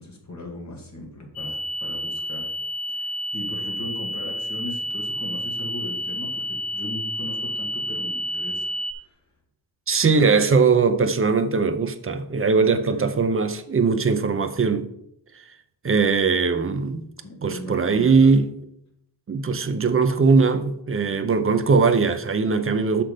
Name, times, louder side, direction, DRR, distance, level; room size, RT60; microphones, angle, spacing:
voice 1, 0.0-2.5 2.9-9.2 12.9-13.0 17.2-18.3, left 1 dB, 40° left, 1.9 m, -38 dB
sound 1, 1.4-8.9, equal, 60° left, 0.8 m, -30 dB
voice 2, 9.9-14.9 15.3-15.4 15.8-17.1 17.4-18.5 19.3-23.0, right 4 dB, 30° right, 0.6 m, -20 dB
6.3 x 5.9 x 5.0 m
wide cardioid pair, 175°, 43 cm